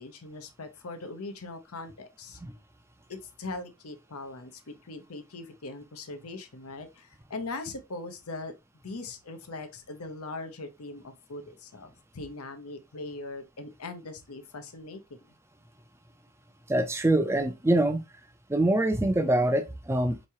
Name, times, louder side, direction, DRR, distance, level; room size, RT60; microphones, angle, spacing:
voice 1, 0.0-2.4 3.1-8.5 8.8-15.4, left 3 dB, 85° left, 0.8 m, -40 dB
voice 2, 16.7-18.0 18.5-20.2, right 1 dB, 10° right, 0.4 m, -24 dB
4.6 x 3.0 x 2.7 m
head